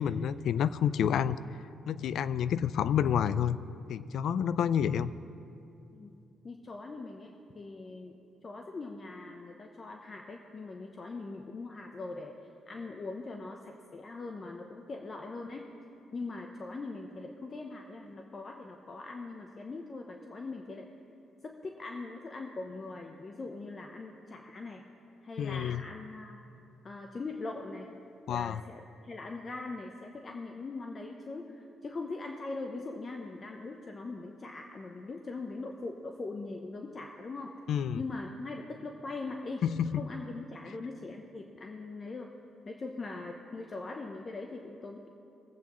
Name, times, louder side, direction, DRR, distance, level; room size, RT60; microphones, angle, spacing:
voice 1, 0.0-1.4 1.9-3.6 3.9-5.1 25.4-25.8 28.3-28.6 37.7-38.0 39.6-40.0, left 8 dB, 70° left, 16 dB, 0.3 m, -29 dB
voice 2, 6.4-8.2 8.4-12.3 12.7-15.7 16.1-20.9 21.4-24.8 25.2-26.4 26.8-28.0 28.3-37.6 38.0-39.7 39.9-42.3 42.6-45.1, left 3 dB, 35° left, 3 dB, 0.7 m, -41 dB
20.0 x 8.3 x 3.1 m, 2.8 s
cardioid pair, 90°, 0 cm